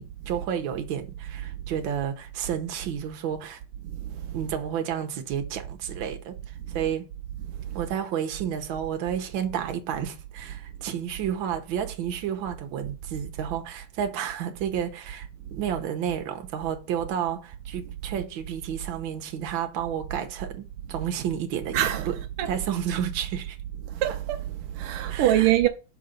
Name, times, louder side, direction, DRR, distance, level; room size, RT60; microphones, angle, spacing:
voice 1, 0.0-3.6 4.3-6.4 6.7-7.1 7.7-22.2 22.5-23.6 25.1-25.5, right 9 dB, 70° right, 1.6 m, -31 dB
voice 2, 21.7-22.6 23.9-25.7, right 13 dB, 85° right, 1.5 m, -25 dB
6.3 x 4.0 x 5.0 m
omnidirectional pair, 2.4 m